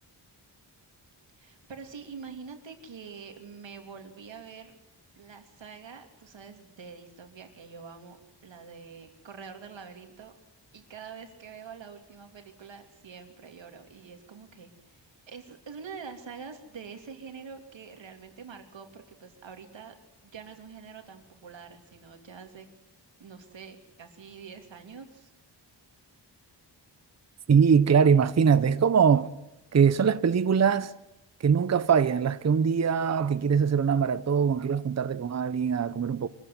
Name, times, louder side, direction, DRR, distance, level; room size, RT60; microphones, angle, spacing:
voice 1, 1.4-4.7 5.1-8.2 8.4-10.3 10.7-19.9 20.2-22.7 23.2-25.3, right 6 dB, 85° right, 3.0 m, -45 dB
voice 2, 27.5-29.3 29.7-30.9 31.4-36.3, right 6 dB, 35° right, 0.7 m, -22 dB
24.0 x 15.0 x 9.5 m
wide cardioid pair, 125°, 44 cm